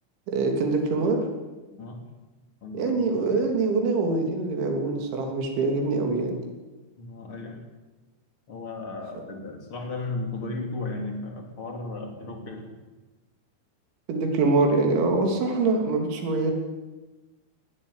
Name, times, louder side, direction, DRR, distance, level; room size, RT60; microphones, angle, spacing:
voice 1, 0.3-1.3 2.7-6.4 14.1-16.5, right 3 dB, 70° right, 2 dB, 5.5 m, -24 dB
voice 2, 1.7-2.0 2.6-3.1 7.0-7.6 8.5-12.8, left 2 dB, 30° left, 3 dB, 3.2 m, -35 dB
18.5 x 17.0 x 10.0 m, 1.2 s
omnidirectional pair, 5.5 m